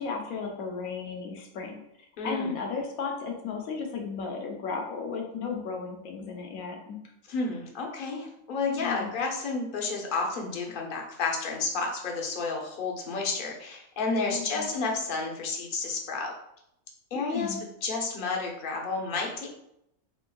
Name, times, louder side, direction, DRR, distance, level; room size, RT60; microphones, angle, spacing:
voice 1, 0.0-1.8 2.2-7.0 8.7-9.1 14.2-14.7 17.1-17.6, left 5 dB, 90° left, 1 dB, 1.1 m, -34 dB
voice 2, 2.2-2.5 7.3-16.3 17.1-17.5 17.8-19.5, left 3 dB, 50° left, 0 dB, 0.7 m, -31 dB
3.7 x 3.4 x 2.2 m, 0.78 s
omnidirectional pair, 1.5 m